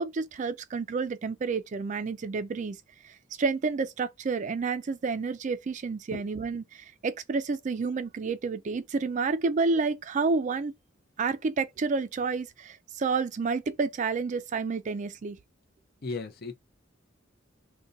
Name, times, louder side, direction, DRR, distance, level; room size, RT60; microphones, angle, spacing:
voice 1, 0.0-2.8 3.0-10.7 11.2-15.4, right 4 dB, 40° right, 0.3 m, -30 dB
voice 2, 16.0-16.5, left 3 dB, 50° left, 0.6 m, -35 dB
2.6 x 2.2 x 3.8 m
head